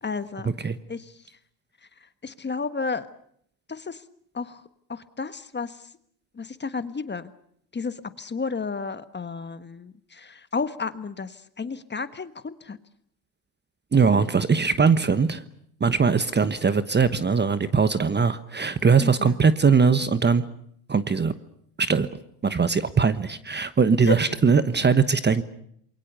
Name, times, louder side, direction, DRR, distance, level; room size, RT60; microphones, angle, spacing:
voice 1, 0.0-0.5 0.9-1.4 2.0-3.1 3.7-4.0 4.3-4.6 4.9-5.9 6.3-7.3 7.7-12.8 19.0-19.4 24.1-24.2, left 4 dB, 20° left, 12 dB, 1.5 m, -32 dB
voice 2, 13.9-15.4 15.8-20.4 20.9-21.3 21.8-22.1 22.4-25.4, right 5 dB, 20° right, 13 dB, 1.2 m, -21 dB
28.0 x 23.0 x 6.9 m, 0.69 s
supercardioid pair, 85°, 50 cm